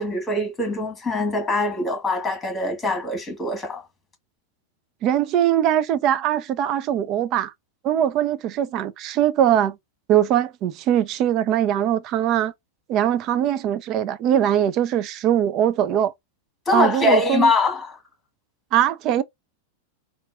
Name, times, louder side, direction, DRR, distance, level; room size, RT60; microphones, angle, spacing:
voice 1, 0.0-3.8 16.7-18.0, left 2 dB, 15° left, 1.4 m, -23 dB
voice 2, 5.0-7.5 7.8-9.8 10.1-12.5 12.9-16.1 16.7-17.5 18.7-19.2, right 10 dB, 40° right, 0.5 m, -21 dB
4.1 x 2.4 x 2.3 m
figure-of-eight pair, 90°, 0 cm